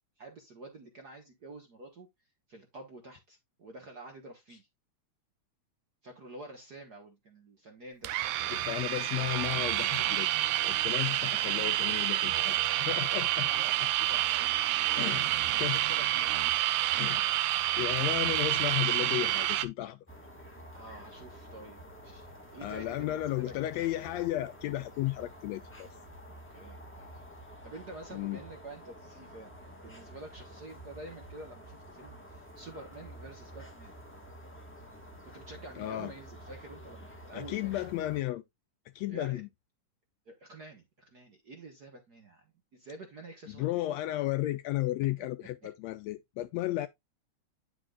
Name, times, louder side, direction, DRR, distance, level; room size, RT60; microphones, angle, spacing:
voice 1, 0.2-2.1 2.5-4.7 6.0-8.1 13.5-16.6 20.7-22.3 22.5-23.8 26.3-27.2 27.6-29.5 29.8-33.9 35.2-37.9 39.1-39.4 40.3-42.4 42.7-43.8 45.2-45.3, right 2 dB, 50° right, 1.3 m, -48 dB
sound 1, 8.0-19.7, right 15 dB, 85° right, 2.0 m, -28 dB
voice 2, 8.5-10.3 10.6-13.5 15.0-15.3 15.6-15.8 17.0-17.3 17.8-20.0 22.6-25.9 28.1-28.4 35.8-36.1 37.3-38.4 38.9-39.5 43.5-46.9, left 15 dB, 80° left, 1.6 m, -34 dB
sound 2, 20.1-38.2, equal, 10° left, 0.8 m, -49 dB
9.9 x 5.9 x 2.4 m
omnidirectional pair, 3.4 m